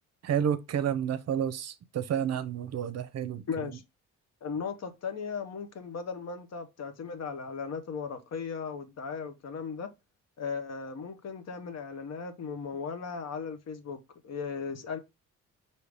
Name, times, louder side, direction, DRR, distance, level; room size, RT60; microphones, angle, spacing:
voice 1, 0.2-3.7, right 9 dB, 55° right, 0.6 m, -30 dB
voice 2, 3.5-3.8 4.4-9.9 10.4-14.0 14.2-15.0, left 5 dB, 55° left, 0.9 m, -37 dB
4.8 x 2.8 x 3.3 m
cardioid pair, 80°, 31 cm